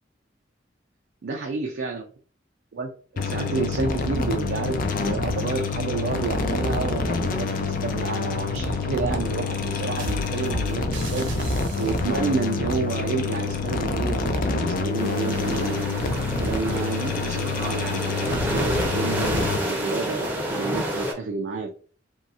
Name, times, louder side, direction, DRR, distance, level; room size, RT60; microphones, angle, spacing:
voice 1, 1.2-2.0 2.7-21.7, right 4 dB, 60° right, 2 dB, 0.4 m, -30 dB
sound 1, 3.2-19.6, left 4 dB, 45° left, 0.4 m, -27 dB
sound 2, 10.0-12.3, equal, 80° right, 0.7 m, -33 dB
sound 3, 15.0-21.1, equal, 10° right, 0.6 m, -30 dB
3.0 x 2.7 x 2.4 m, 0.42 s
head